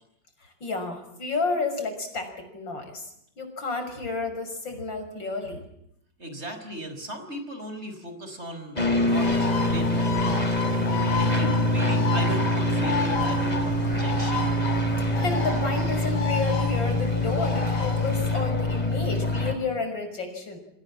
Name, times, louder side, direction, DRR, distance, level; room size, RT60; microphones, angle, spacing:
voice 1, 0.6-5.6 15.1-20.6, left 3 dB, 85° left, 6 dB, 6.9 m, -31 dB
voice 2, 6.2-10.5 11.1-14.6, equal, 35° right, 7 dB, 5.7 m, -36 dB
sound 1, 8.8-19.5, left 1 dB, 20° left, 3.4 m, -25 dB
Bird, 9.1-18.4, left 4 dB, 65° left, 5.4 m, -32 dB
29.0 x 25.5 x 7.5 m, 0.73 s
omnidirectional pair, 2.0 m